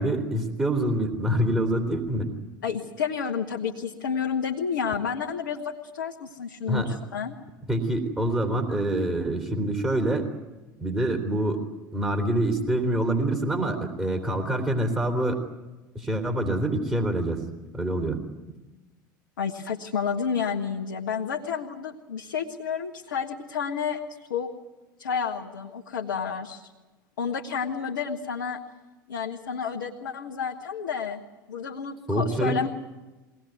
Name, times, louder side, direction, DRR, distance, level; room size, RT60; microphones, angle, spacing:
voice 1, 0.0-2.3 6.7-6.9 7.7-10.3 10.8-11.6 11.9-15.4 15.9-17.4 17.7-18.2 32.1-32.6, right 1 dB, 10° right, 1 dB, 3.3 m, -26 dB
voice 2, 2.6-7.4 19.4-24.0 24.3-24.5 25.0-26.7 27.2-28.6 29.1-31.2 31.5-32.7, left 6 dB, 70° left, 0 dB, 1.5 m, -30 dB
22.5 x 18.0 x 9.4 m, 1.1 s
figure-of-eight pair, 75°, 11 cm